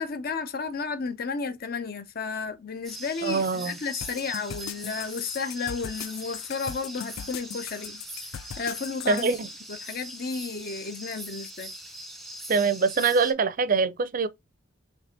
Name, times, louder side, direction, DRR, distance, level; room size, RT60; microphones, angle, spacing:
voice 1, 0.0-8.0 8.6-9.4 9.7-11.7, left 5 dB, 50° left, 0.6 m, -33 dB
sound 1, 2.8-13.3, equal, ahead, 0.6 m, -41 dB
voice 2, 3.2-3.7 9.1-9.5 12.5-14.3, right 4 dB, 45° right, 0.4 m, -24 dB
sound 2, 4.0-9.2, left 9 dB, 90° left, 0.4 m, -39 dB
3.3 x 3.3 x 4.0 m
head